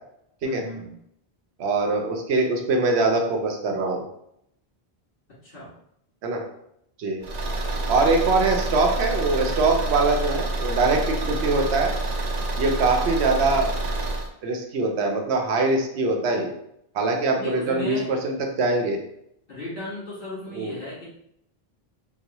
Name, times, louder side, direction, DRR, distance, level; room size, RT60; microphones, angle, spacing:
voice 1, 0.4-0.9 5.4-5.7 7.8-8.8 11.2-11.5 17.4-18.1 19.5-21.1, left 1 dB, 60° left, -8 dB, 1.9 m, -37 dB
voice 2, 1.6-4.0 6.2-6.4 7.0-7.2 7.9-11.9 12.6-13.7 14.4-16.5 16.9-19.0 20.5-20.7, right 3 dB, 85° right, 2 dB, 0.9 m, -23 dB
Car / Engine, 7.2-14.3, right 2 dB, 55° right, 0.5 m, -27 dB
3.9 x 2.1 x 2.9 m, 0.75 s
omnidirectional pair, 1.1 m